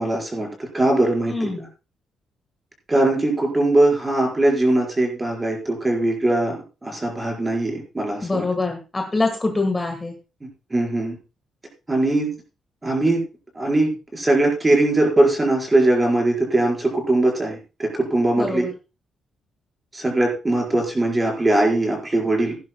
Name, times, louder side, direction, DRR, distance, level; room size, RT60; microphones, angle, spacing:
voice 1, 0.0-1.7 2.9-8.5 10.7-11.1 11.9-12.3 12.8-13.2 13.5-18.7 19.9-22.6, right 2 dB, 15° right, 0 dB, 4.7 m, -21 dB
voice 2, 1.3-1.7 8.2-10.1 18.3-18.7, left 3 dB, 15° left, 3 dB, 1.6 m, -24 dB
17.0 x 10.5 x 2.2 m, 0.30 s
cardioid pair, 155°, 0 cm